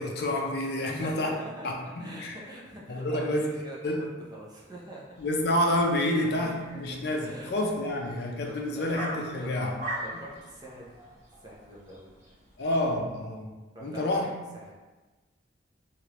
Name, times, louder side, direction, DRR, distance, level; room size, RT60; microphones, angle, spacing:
voice 1, 0.0-1.3 1.6-2.3 2.9-3.5 3.8-4.1 5.2-9.8 12.6-13.5 13.8-14.4, left 1 dB, 60° left, 1 dB, 0.4 m, -28 dB
voice 2, 0.7-5.1 6.0-7.5 8.1-8.9 9.4-9.5 10.0-11.0 11.4-12.2 13.7-14.7, right 1 dB, 20° right, -4 dB, 0.6 m, -45 dB
sound 1, 5.1-13.0, right 1 dB, 40° right, 1.0 m, -43 dB
3.2 x 2.5 x 2.9 m, 1.2 s
head